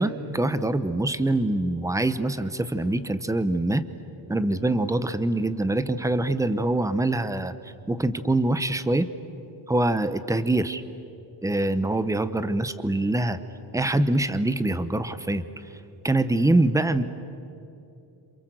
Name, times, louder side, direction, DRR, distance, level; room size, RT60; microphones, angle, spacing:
voice 1, 0.0-3.8 4.3-7.5 7.9-9.1 9.7-10.8 11.4-13.4 13.7-15.4 16.0-17.0, right 2 dB, 5° right, 12 dB, 0.9 m, -24 dB
27.5 x 27.5 x 7.8 m, 2.8 s
cardioid pair, 145°, 46 cm